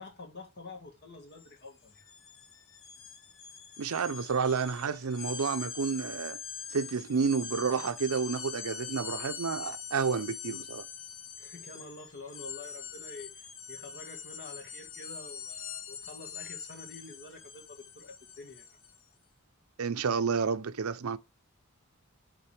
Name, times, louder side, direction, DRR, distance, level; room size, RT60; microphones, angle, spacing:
voice 1, 0.0-2.1 11.4-18.8, left 3 dB, 50° left, 1.8 m, -48 dB
sound 1, 1.3-1.5 1.8-19.0, left 7 dB, 65° left, 0.8 m, -43 dB
voice 2, 3.8-6.4 6.7-10.9 19.8-21.2, right 5 dB, 75° right, 0.6 m, -30 dB
8.5 x 3.8 x 3.3 m
head